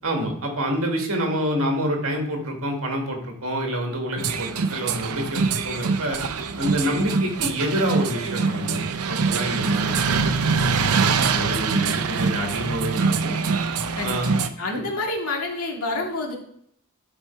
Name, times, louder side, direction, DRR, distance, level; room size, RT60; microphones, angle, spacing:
voice 1, 0.0-6.2 6.6-8.8 9.1-13.3 14.0-14.4, equal, 65° right, 1 dB, 2.1 m, -27 dB
sound 1, 4.2-14.5, right 5 dB, 85° right, 0.7 m, -24 dB
voice 2, 14.0-16.3, left 2 dB, 85° left, 0 dB, 2.2 m, -28 dB
12.5 x 4.4 x 4.6 m, 0.68 s
head